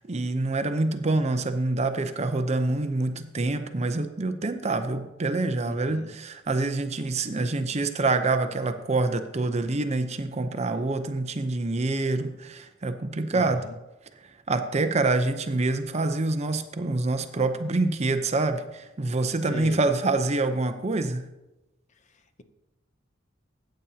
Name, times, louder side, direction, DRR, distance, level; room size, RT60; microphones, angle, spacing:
voice 1, 0.0-13.6 14.5-21.3, right 2 dB, 35° right, 8 dB, 0.6 m, -26 dB
voice 2, 5.7-6.1 13.3-13.8 19.5-19.8 21.9-22.4, left 2 dB, 40° left, 9 dB, 0.6 m, -40 dB
14.5 x 8.7 x 2.8 m, 0.98 s
head